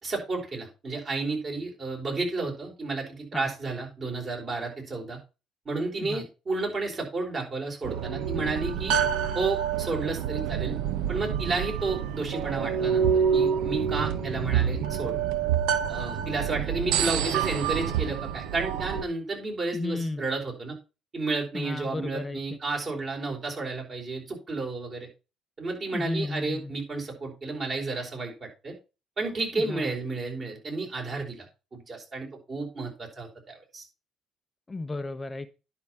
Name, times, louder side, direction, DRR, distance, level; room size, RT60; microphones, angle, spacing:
voice 1, 0.0-5.2 5.6-9.0 9.3-10.7 11.1-15.2 15.9-20.8 21.1-25.1 25.6-28.7 29.2-31.5 31.7-33.8, right 3 dB, 40° right, 4.5 m, -32 dB
sound 1, 7.8-19.0, right 8 dB, 70° right, 0.8 m, -27 dB
voice 2, 14.4-14.8 19.7-20.2 21.5-22.4 25.9-26.7 29.6-30.0 34.7-35.5, left 2 dB, 25° left, 0.7 m, -34 dB
10.5 x 5.9 x 4.4 m
figure-of-eight pair, 50°, 0 cm